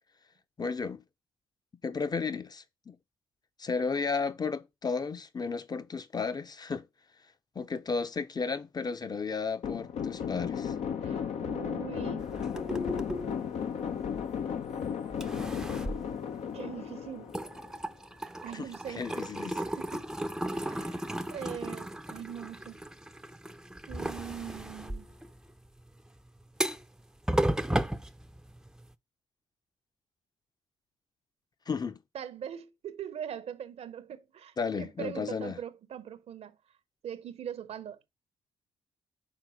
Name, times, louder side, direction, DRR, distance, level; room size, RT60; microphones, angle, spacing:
voice 1, 0.6-1.0 1.8-3.0 3.6-6.9 7.5-10.7 18.5-18.7 19.0-19.6 31.7-32.0 34.6-35.6, left 5 dB, 35° left, 0.9 m, -33 dB
sound 1, 9.6-17.9, left 7 dB, 65° left, 0.8 m, -35 dB
voice 2, 11.0-12.3 16.5-17.4 18.4-19.1 19.5-20.1 20.5-21.0 21.3-22.8 23.9-25.1 32.1-36.6 37.0-38.1, right 9 dB, 60° right, 0.8 m, -41 dB
sound 2, 12.2-14.7 15.1-16.9 17.2-28.9, right 1 dB, 5° right, 0.6 m, -35 dB
6.0 x 4.3 x 5.0 m
hypercardioid pair, 50°, 12 cm